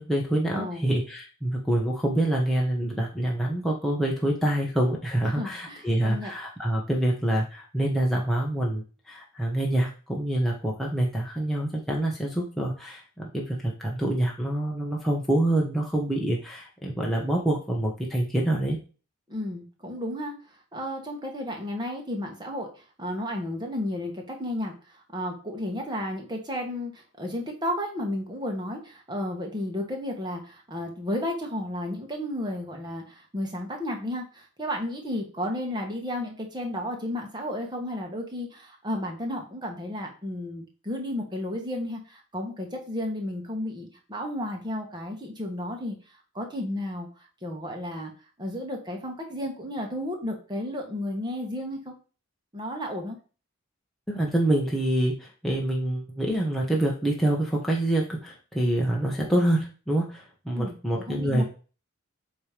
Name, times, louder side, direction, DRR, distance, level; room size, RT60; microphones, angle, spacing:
voice 1, 0.0-13.0 13.3-18.8 54.1-61.4, right 1 dB, ahead, -3 dB, 1.1 m, -26 dB
voice 2, 0.5-0.8 5.2-6.3 19.3-20.3 20.7-47.1 47.4-48.1 48.4-51.9 52.5-53.2 60.5-60.8 61.1-61.4, left 1 dB, 20° right, 1 dB, 1.6 m, -33 dB
8.1 x 3.2 x 5.1 m, 0.36 s
head